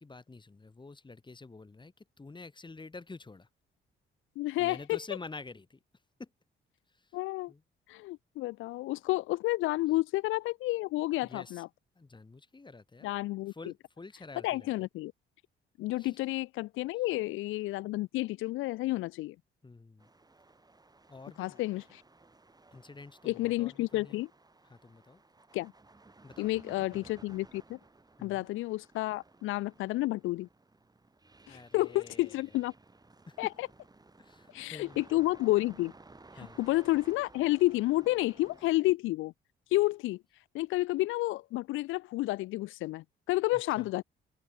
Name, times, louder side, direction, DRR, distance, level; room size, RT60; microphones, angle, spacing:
voice 1, 0.0-3.5 4.6-5.8 6.2-6.3 6.9-7.2 7.5-7.6 11.2-11.6 12.0-13.1 13.5-14.7 16.0-16.3 19.6-20.1 21.1-21.6 22.7-24.2 24.6-25.2 26.2-27.2 28.2-28.5 31.5-32.5 33.3-33.4 34.2-35.0 36.4-36.6 43.5-43.9, left 3 dB, 25° left, 7.1 m, -48 dB
voice 2, 4.4-5.0 7.1-7.5 7.9-11.7 13.0-13.5 14.4-15.1 15.8-19.4 21.4-22.0 23.2-24.3 25.5-25.7 26.4-27.8 28.2-30.5 31.5-32.7 33.4-33.7 34.5-35.9 36.6-39.3 39.7-40.2 40.5-44.0, left 18 dB, 85° left, 0.5 m, -30 dB
sound 1, 20.0-38.7, right 3 dB, 20° right, 5.4 m, -58 dB
open air
cardioid pair, 90°, 20 cm